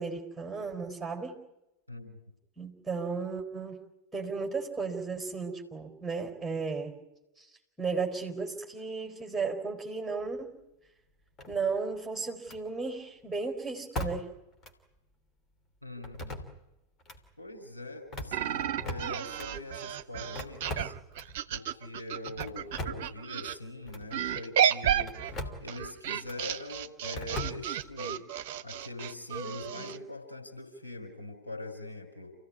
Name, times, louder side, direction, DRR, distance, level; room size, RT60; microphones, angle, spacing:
voice 1, 0.0-1.4 2.6-3.8 4.1-7.0 7.4-7.5 7.8-10.5 11.5-14.3 29.4-30.0, right 4 dB, 5° right, 3 dB, 4.5 m, -34 dB
voice 2, 1.9-2.2 15.8-16.4 17.4-20.9 21.5-25.2 25.6-28.3 28.6-32.3, left 2 dB, 90° left, 8 dB, 5.3 m, -43 dB
sound 1, 11.4-11.9 12.4-12.6 14.0-14.4 14.6-14.7 16.0-16.7 17.0-17.2 18.0-19.5 20.4-21.4 22.3-23.2 23.9-24.1 25.0-25.7 26.2-26.4 27.1-27.9, left 1 dB, 25° left, 3.0 m, -39 dB
sound 2, 18.3-23.6 24.1-30.0, right 10 dB, 50° right, 0.9 m, -32 dB
28.0 x 16.0 x 9.7 m, 0.96 s
figure-of-eight pair, 90°, 0 cm